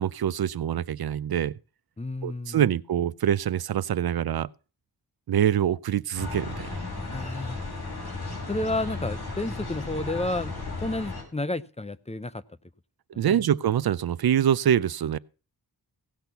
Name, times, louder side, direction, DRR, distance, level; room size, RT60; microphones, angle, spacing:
voice 1, 0.0-1.5 2.2-4.5 5.3-6.8 13.2-15.2, right 10 dB, 75° right, 0.5 m, -25 dB
voice 2, 2.0-2.7 7.0-7.6 8.5-12.4 13.1-13.5, left 2 dB, 15° left, 0.6 m, -31 dB
sound 1, 6.2-11.2, left 3 dB, 75° left, 5.8 m, -35 dB
17.0 x 6.1 x 6.9 m
wide cardioid pair, 105°, 37 cm